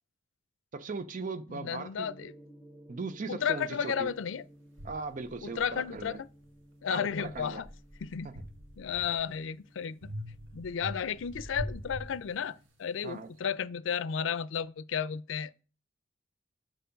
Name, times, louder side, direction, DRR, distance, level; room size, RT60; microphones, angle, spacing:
voice 1, 0.7-2.1 2.9-4.1 4.8-6.2 6.9-7.6 13.0-13.3, right 3 dB, 45° right, 0.5 m, -38 dB
voice 2, 1.5-2.3 3.3-4.4 5.4-6.2 6.8-7.7 8.0-8.3 8.8-10.1 10.5-15.5, left 7 dB, 90° left, 0.4 m, -33 dB
Gong, 2.0-12.7, right 1 dB, 10° right, 0.8 m, -57 dB
sound 1, 4.0-4.1 4.8-6.6 7.1-9.4 10.0-12.8, equal, 90° right, 1.2 m, -44 dB
6.9 x 6.2 x 5.1 m
head